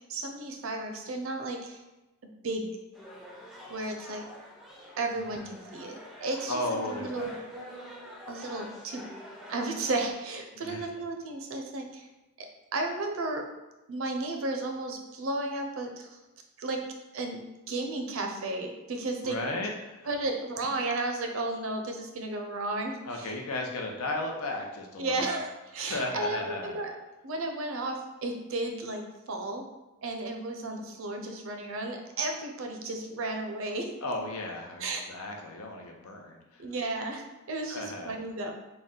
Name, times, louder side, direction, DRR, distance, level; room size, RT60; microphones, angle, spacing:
voice 1, 0.1-1.8 2.4-2.7 3.7-4.2 5.0-6.6 6.9-7.3 8.3-9.0 9.5-12.1 12.7-13.4 13.9-16.2 16.6-16.8 17.1-17.4 17.7-19.4 20.1-23.3 25.0-26.9 27.2-29.0 29.3-29.6 30.0-33.9 34.8-35.0 36.6-38.5, right 2 dB, 65° right, 3 dB, 0.5 m, -33 dB
sound 1, 2.9-10.1, equal, ahead, 0.4 m, -45 dB
voice 2, 5.2-5.5 6.5-7.4 10.6-10.8 19.2-20.1 23.0-25.3 25.9-26.8 34.0-36.6 37.7-38.2, left 2 dB, 85° left, 2 dB, 0.7 m, -35 dB
3.9 x 2.2 x 3.6 m, 1.1 s
head